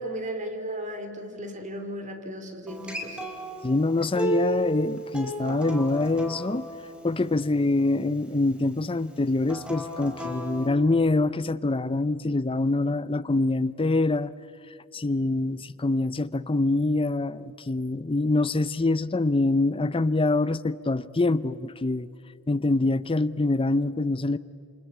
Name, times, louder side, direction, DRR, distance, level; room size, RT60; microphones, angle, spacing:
voice 1, 0.0-3.2, right 1 dB, 35° right, 6 dB, 2.9 m, -35 dB
Acoustic guitar, 2.7-7.9 9.4-10.7, right 2 dB, 5° right, 2.9 m, -34 dB
voice 2, 3.6-6.7 7.0-14.3 14.9-22.1 22.5-24.4, left 2 dB, 25° left, 16 dB, 0.6 m, -25 dB
28.0 x 26.0 x 8.2 m, 2.3 s
head